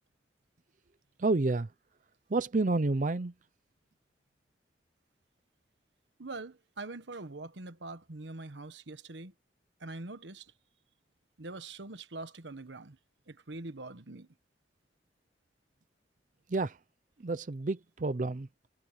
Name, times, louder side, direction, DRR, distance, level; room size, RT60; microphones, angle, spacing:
voice 1, 1.2-1.7 2.3-3.3 16.5-16.8 17.2-18.5, right 3 dB, 45° right, 0.6 m, -29 dB
voice 2, 6.2-9.3 9.8-10.5 11.4-13.0 13.3-14.3, right 2 dB, 85° right, 1.2 m, -43 dB
head